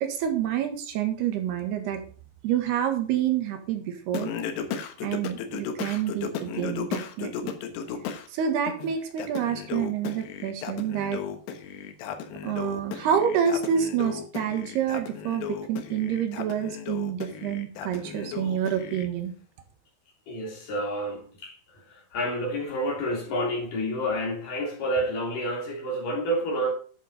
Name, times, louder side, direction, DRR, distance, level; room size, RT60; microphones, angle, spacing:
voice 1, 0.0-2.0 2.4-4.3 5.0-7.5 8.3-11.2 12.4-19.3, right 9 dB, 80° right, 3.7 m, -28 dB
Singing, 4.1-8.3 8.7-19.1, left 7 dB, 85° left, 3.4 m, -35 dB
voice 2, 20.3-26.7, equal, 55° left, 4.8 m, -29 dB
11.0 x 7.4 x 5.6 m
omnidirectional pair, 4.7 m